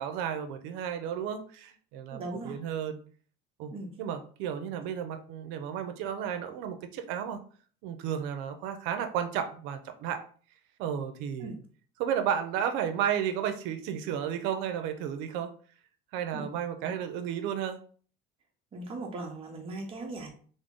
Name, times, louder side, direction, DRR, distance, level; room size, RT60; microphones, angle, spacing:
voice 1, 0.0-3.0 3.6-3.7 4.0-7.4 7.8-10.2 10.8-11.5 12.0-15.5 16.1-17.8, right 8 dB, 90° right, 8 dB, 0.5 m, -33 dB
voice 2, 2.1-2.6 3.7-4.0 11.4-11.6 16.3-16.5 16.8-16.9 18.7-20.3, right 2 dB, 30° right, 1 dB, 0.9 m, -39 dB
3.6 x 2.0 x 3.6 m, 0.43 s
cardioid pair, 155°, 18 cm